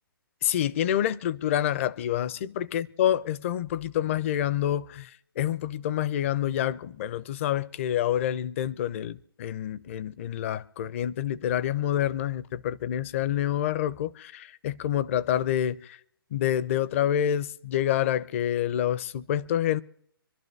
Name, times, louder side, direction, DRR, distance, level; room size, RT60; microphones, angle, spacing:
voice 1, 0.4-5.1 5.4-16.0 16.3-19.8, left 11 dB, 35° left, 0.5 m, -27 dB
26.0 x 12.0 x 3.3 m
figure-of-eight pair, 140°, 12 cm